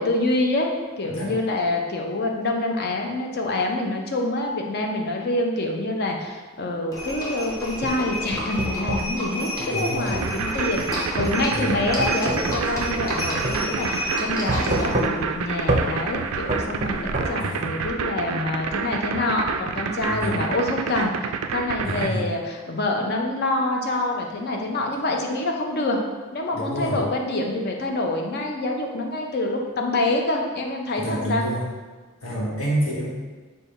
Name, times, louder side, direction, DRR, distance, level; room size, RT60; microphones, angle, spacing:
voice 1, 0.0-21.1 21.5-26.0 26.3-31.5, left 2 dB, 50° left, 1 dB, 0.6 m, -26 dB
Livestock farm animals working animals, 6.9-15.0, equal, 15° left, 0.7 m, -30 dB
sound 1, 7.6-9.2 10.1-10.3 11.2-13.2 13.4-13.6 14.5-15.4 15.7-15.9 16.5-17.3, right 2 dB, 30° right, 0.5 m, -26 dB
voice 2, 9.6-10.2 11.5-11.7 17.4-17.7 20.1-20.4 21.8-22.2 26.5-27.0 31.0-31.7 32.2-33.1, equal, 80° left, -4 dB, 1.2 m, -28 dB
sound 2, 10.2-22.1, right 6 dB, 90° right, 0.3 m, -28 dB
5.3 x 2.3 x 4.1 m, 1.4 s
head